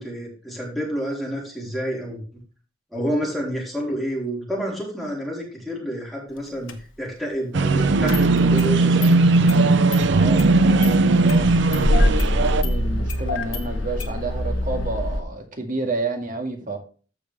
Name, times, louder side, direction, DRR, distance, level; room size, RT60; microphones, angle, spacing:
voice 1, 0.0-2.2 2.9-9.8, equal, ahead, 3.3 m, -29 dB
Engine starting, 6.7-6.8 8.1-8.7 9.0-9.1 9.5-9.6 9.9-10.0 10.4-10.9 11.3-15.2, left 1 dB, 90° left, 1.3 m, -24 dB
sound 1, 7.5-12.6, right 3 dB, 65° right, 0.6 m, -18 dB
voice 2, 10.1-16.8, right 3 dB, 45° right, 1.9 m, -30 dB
14.0 x 5.0 x 3.4 m
head